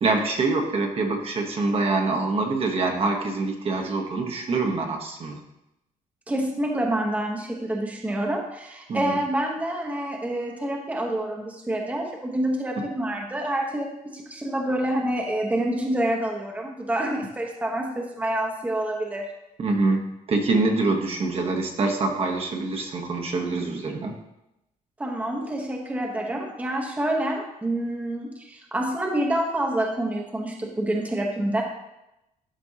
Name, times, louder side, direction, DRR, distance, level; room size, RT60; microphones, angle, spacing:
voice 1, 0.0-5.4 8.9-9.2 19.6-24.1, right 3 dB, 40° right, 2 dB, 1.1 m, -25 dB
voice 2, 6.3-19.3 25.0-31.6, right 1 dB, 10° right, 0 dB, 1.0 m, -27 dB
12.5 x 5.2 x 2.8 m, 0.89 s
cardioid pair, 135°, 15 cm